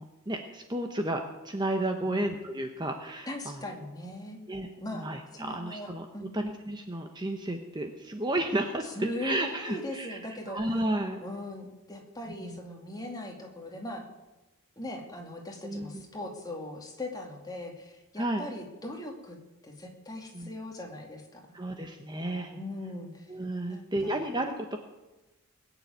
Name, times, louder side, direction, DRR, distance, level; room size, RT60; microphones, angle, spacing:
voice 1, 0.0-3.6 4.5-4.7 4.9-6.0 6.3-8.9 9.2-10.2 10.5-11.2 12.4-12.6 15.6-16.0 18.2-18.4 20.3-20.5 21.5-22.5 23.3-24.8, right 1 dB, 20° right, 4 dB, 1.0 m, -32 dB
voice 2, 3.3-4.4 4.8-5.1 5.3-6.4 8.8-10.6 11.2-14.1 14.8-19.4 19.6-21.5 22.5-23.3 23.7-24.2, left 1 dB, 20° left, 1 dB, 2.5 m, -39 dB
21.0 x 7.2 x 9.3 m, 1.1 s
head